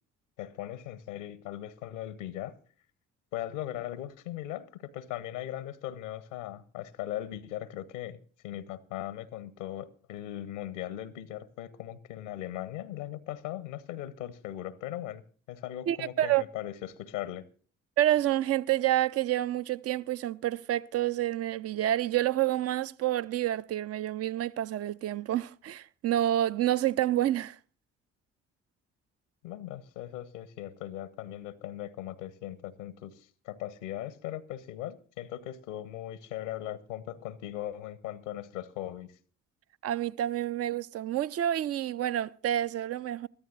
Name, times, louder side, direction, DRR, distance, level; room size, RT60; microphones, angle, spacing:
voice 1, 0.4-2.6 3.3-8.2 8.4-15.2 15.5-17.4 29.4-39.1, left 12 dB, 70° left, 0.9 m, -39 dB
voice 2, 15.9-16.4 18.0-27.6 39.8-43.3, right 13 dB, 40° right, 0.6 m, -28 dB
23.5 x 14.0 x 2.5 m
figure-of-eight pair, 45°, 38 cm